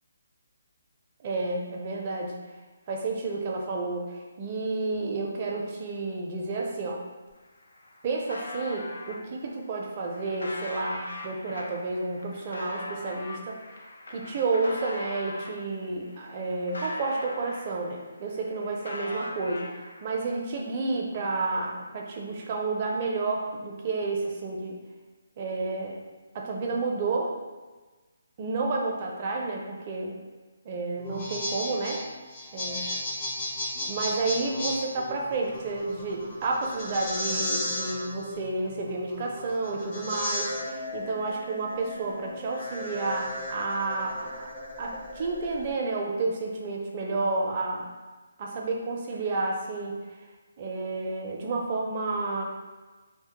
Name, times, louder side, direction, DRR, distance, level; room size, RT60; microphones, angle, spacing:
voice 1, 1.2-2.3 2.9-7.0 8.0-13.6 14.1-24.8 25.4-26.0 26.3-27.3 28.4-30.2 30.6-32.0 32.5-32.9 33.8-44.4 44.8-47.9 48.4-50.0 50.6-52.4, right 3 dB, 35° right, -1 dB, 0.4 m, -30 dB
sound 1, 7.3-7.4 7.6-9.2 9.8-15.6 16.0-18.0 18.3-20.1, left 1 dB, 80° left, 0.3 m, -40 dB
sound 2, 31.0-45.7, left 1 dB, 45° left, 0.7 m, -35 dB
2.1 x 2.0 x 2.8 m, 1.3 s
hypercardioid pair, 155°, 0 cm